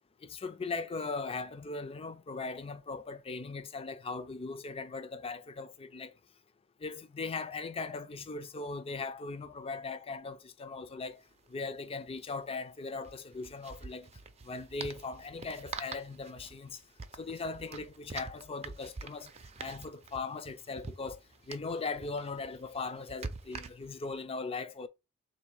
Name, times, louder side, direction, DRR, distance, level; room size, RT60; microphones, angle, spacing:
voice 1, 0.2-6.1 6.8-11.2 11.5-14.1 14.4-16.8 17.2-19.3 19.6-21.2 21.5-24.9, left 4 dB, 25° left, 0.4 m, -39 dB
sound 1, 11.0-11.1 11.3-11.5 13.0-24.2, right 4 dB, 30° right, 0.5 m, -46 dB
3.6 x 2.7 x 4.6 m
head